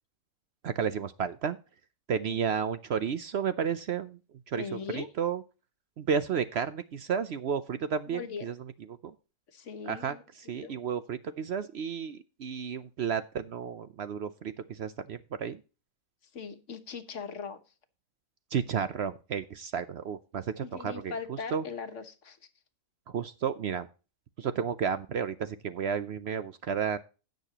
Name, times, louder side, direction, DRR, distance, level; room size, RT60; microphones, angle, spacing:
voice 1, 0.6-1.6 2.1-4.2 4.5-5.4 6.0-8.6 9.0-9.1 9.8-15.6 18.5-21.6 23.1-23.9 24.4-27.0, right 7 dB, 60° right, 12 dB, 0.8 m, -32 dB
voice 2, 2.1-2.4 4.6-5.1 8.1-8.4 9.5-10.2 10.6-10.7 16.3-17.6 20.6-22.4, left 5 dB, 60° left, 8 dB, 1.4 m, -40 dB
16.5 x 6.6 x 2.9 m, 0.33 s
omnidirectional pair, 1.4 m